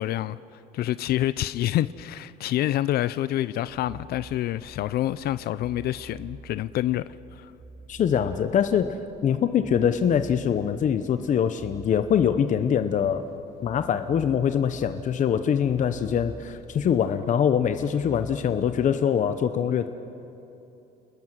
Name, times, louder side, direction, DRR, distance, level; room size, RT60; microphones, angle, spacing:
voice 1, 0.0-7.5, left 13 dB, 70° left, 0.5 m, -27 dB
sound 1, 3.6-19.1, right 3 dB, 50° right, 3.3 m, -47 dB
voice 2, 7.9-9.0 9.2-13.3 13.6-19.9, left 8 dB, 45° left, 0.9 m, -23 dB
29.5 x 20.5 x 7.5 m
cardioid pair, 110°, 17 cm